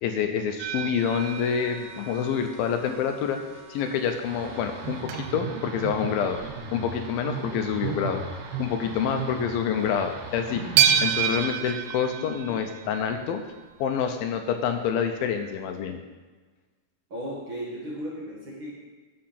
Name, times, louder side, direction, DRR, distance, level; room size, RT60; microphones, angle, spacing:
voice 1, 0.0-3.4 3.7-6.4 6.7-8.2 8.6-10.6 11.0-13.4 13.8-16.0, left 7 dB, 80° left, 6 dB, 2.4 m, -27 dB
sound 1, 0.6-3.1 3.5-3.7 4.2-4.3 4.5-4.6 5.1-7.2 7.6-7.9 8.1-8.2 8.8-9.0 9.4-9.5 10.8-13.7 14.9-15.0 15.4-15.5, right 9 dB, 85° right, 2.4 m, -29 dB
sound 2, 0.9-5.1, right 1 dB, 20° right, 1.8 m, -47 dB
sound 3, 4.2-11.5, right 5 dB, 65° right, 2.2 m, -36 dB
voice 2, 11.6-12.6 17.1-18.8, equal, 45° right, -5 dB, 1.9 m, -37 dB
8.7 x 7.5 x 5.8 m, 1.3 s
omnidirectional pair, 4.4 m